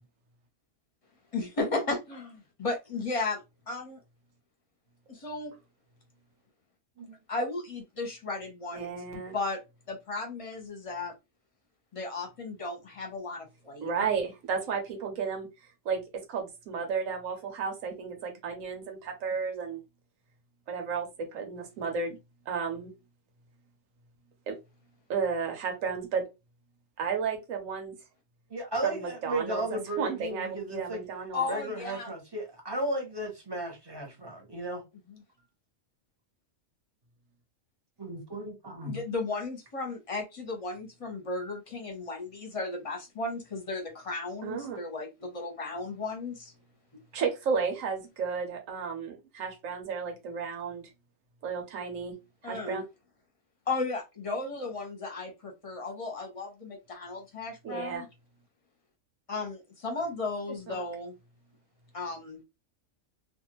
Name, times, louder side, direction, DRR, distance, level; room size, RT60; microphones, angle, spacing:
voice 1, 1.3-2.3 2.6-3.4 3.7-4.0 5.1-5.5 7.3-9.0 9.3-9.6 9.9-11.1 11.9-14.1 31.3-32.1 35.1-35.2 38.8-46.5 52.4-52.8 53.7-58.1 59.3-61.2 61.9-62.4, left 3 dB, 30° left, 0.8 m, -35 dB
voice 2, 8.7-9.3 13.8-15.5 15.8-19.8 20.7-22.2 22.5-22.9 24.5-24.6 25.1-26.3 27.0-27.9 28.8-31.4 44.4-44.8 47.1-50.9 51.4-52.2 52.4-52.8 57.6-58.1 60.7-60.8, right 5 dB, 85° right, 1.2 m, -33 dB
voice 3, 28.5-31.0 31.5-34.8 38.0-39.0, right 1 dB, 20° right, 0.9 m, -35 dB
2.6 x 2.5 x 2.9 m
omnidirectional pair, 1.3 m